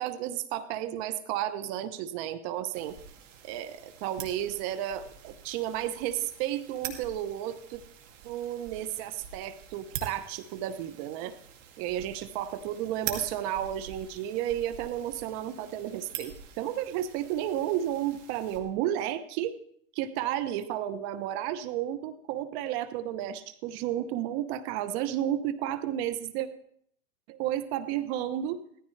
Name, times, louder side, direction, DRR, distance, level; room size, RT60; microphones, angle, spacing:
voice 1, 0.0-3.0 3.4-7.8 8.2-11.3 11.8-19.5 19.9-26.5 27.3-28.6, right 11 dB, 55° right, 12 dB, 1.0 m, -32 dB
sound 1, 2.7-18.6, right 8 dB, 70° right, 2.6 m, -45 dB
17.0 x 14.0 x 3.3 m, 0.67 s
hypercardioid pair, 115°, 39 cm